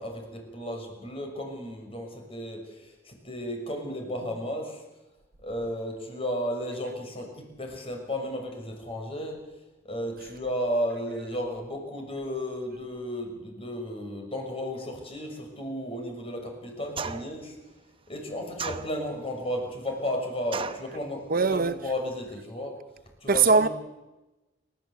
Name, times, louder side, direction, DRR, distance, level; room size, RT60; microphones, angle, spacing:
voice 1, 0.0-4.8 5.4-9.4 9.8-17.6 18.1-22.8 23.2-23.7, equal, 30° left, 6.2 m, -34 dB
sound 1, 17.0-17.4 18.6-19.3 20.5-20.9, right 5 dB, 30° right, 1.0 m, -34 dB
voice 2, 21.3-21.8 23.3-23.7, right 4 dB, 55° right, 0.8 m, -21 dB
29.5 x 14.0 x 8.2 m
head